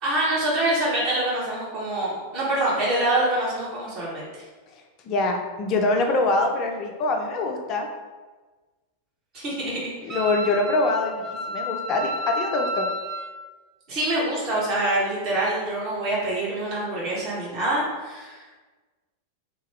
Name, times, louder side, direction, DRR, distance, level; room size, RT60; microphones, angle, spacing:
voice 1, 0.0-4.4 9.3-10.2 13.9-18.6, right 1 dB, 40° right, -7 dB, 1.1 m, -25 dB
voice 2, 5.0-7.9 9.6-12.9, left 2 dB, 35° left, 3 dB, 0.4 m, -24 dB
Wind instrument woodwind instrument, 10.1-13.3, equal, 25° right, 0.4 m, -31 dB
2.8 x 2.2 x 3.1 m, 1.3 s
figure-of-eight pair, 90°, 0 cm